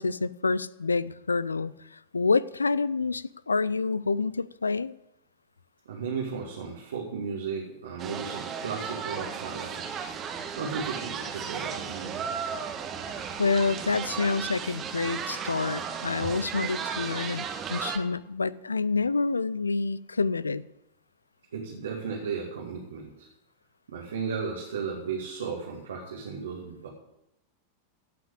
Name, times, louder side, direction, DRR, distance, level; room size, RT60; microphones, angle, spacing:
voice 1, 0.0-4.9 13.4-20.6, left 4 dB, 75° left, 21 dB, 0.4 m, -28 dB
voice 2, 5.9-10.1 10.6-12.5 13.2-13.4 16.2-16.3 21.5-23.3 23.9-26.9, right 5 dB, 65° right, -1 dB, 2.3 m, -35 dB
sound 1, 8.0-18.0, right 7 dB, 30° right, 1.7 m, -35 dB
16.0 x 6.1 x 8.3 m, 0.87 s
figure-of-eight pair, 90°, 0 cm